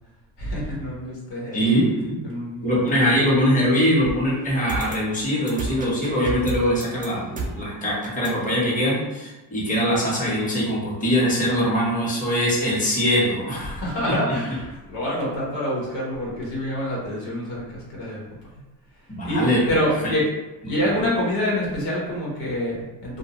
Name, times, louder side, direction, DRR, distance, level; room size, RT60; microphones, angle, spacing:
voice 1, 0.4-1.6 2.2-2.9 3.2-3.3 13.7-18.2 19.2-20.2 20.7-23.2, equal, 80° left, -5 dB, 1.2 m, -26 dB
voice 2, 1.5-2.2 2.6-14.3 19.1-19.6, equal, 20° left, -6 dB, 1.0 m, -22 dB
sound 1, 4.0-9.1, right 3 dB, 20° right, 0.4 m, -34 dB
2.5 x 2.2 x 3.0 m, 1.1 s
cardioid pair, 90°, 43 cm